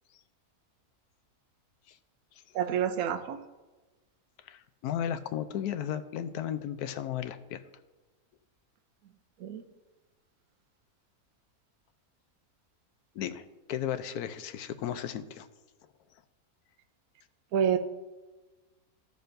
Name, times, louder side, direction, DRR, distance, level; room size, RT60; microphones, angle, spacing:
voice 1, 2.5-3.4 9.4-9.7 17.5-17.8, right 8 dB, 75° right, 7 dB, 1.1 m, -28 dB
voice 2, 4.4-7.6 13.1-15.5, left 10 dB, 85° left, 10 dB, 1.1 m, -35 dB
15.5 x 6.6 x 2.6 m, 1.2 s
omnidirectional pair, 1.6 m